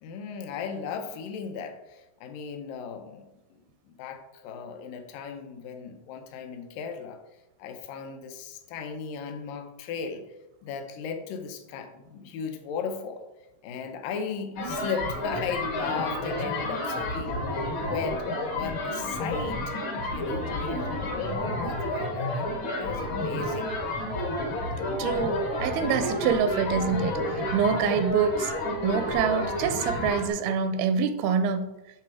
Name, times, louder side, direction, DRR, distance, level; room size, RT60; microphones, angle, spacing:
voice 1, 0.0-3.6 3.9-7.2 7.6-10.3 10.6-13.3 13.6-17.5 17.8-18.2 18.5-19.7 20.1-23.8, left 6 dB, 75° left, 2.3 m, -36 dB
sound 1, 14.6-30.3, left 1 dB, 55° left, 1.4 m, -30 dB
voice 2, 25.0-28.5 28.8-31.8, right 7 dB, 85° right, 2.5 m, -26 dB
11.0 x 3.7 x 4.8 m
omnidirectional pair, 4.3 m